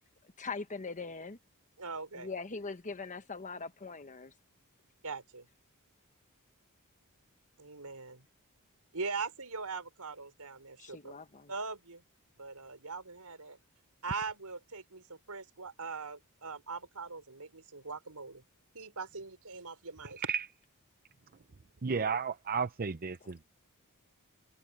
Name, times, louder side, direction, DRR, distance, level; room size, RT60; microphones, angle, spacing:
voice 1, 0.4-1.4 2.1-4.3 10.8-11.5, left 4 dB, 35° left, 1.2 m, -41 dB
voice 2, 1.8-2.3 5.0-5.5 7.6-8.3 8.9-11.1 11.5-12.0 12.4-13.6 14.0-18.4 18.7-20.3, right 4 dB, 85° right, 4.7 m, -41 dB
voice 3, 20.0-20.5 21.8-23.4, right 6 dB, 40° right, 0.6 m, -33 dB
head